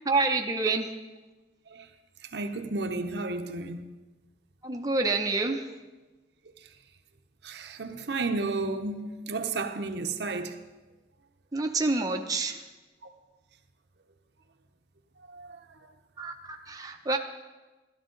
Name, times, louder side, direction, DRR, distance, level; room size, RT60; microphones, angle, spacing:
voice 1, 0.1-0.9 4.6-5.7 11.5-12.6 16.2-17.2, right 3 dB, 20° right, 0.6 m, -27 dB
voice 2, 2.3-4.0 7.4-10.5 15.3-15.6, right 3 dB, 65° right, 0.7 m, -32 dB
13.0 x 12.0 x 3.8 m
head